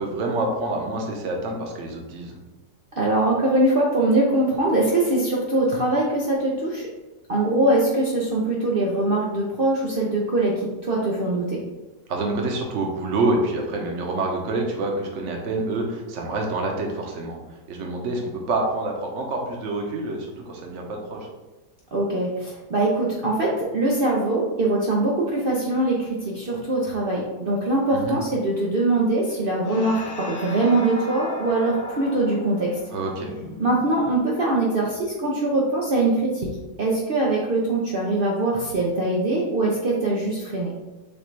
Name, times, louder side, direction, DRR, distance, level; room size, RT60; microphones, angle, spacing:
voice 1, 0.0-2.4 12.1-17.4 17.7-21.2 27.9-28.2 32.9-33.3, right 2 dB, 55° right, 1 dB, 1.0 m, -27 dB
voice 2, 2.9-6.9 7.3-11.6 21.9-32.8 33.6-36.5 36.8-40.7, right 2 dB, 75° right, -3 dB, 0.5 m, -22 dB
sound 1, 29.6-34.4, left 3 dB, 75° left, 1.4 m, -37 dB
6.6 x 2.5 x 3.1 m, 1.1 s
omnidirectional pair, 1.9 m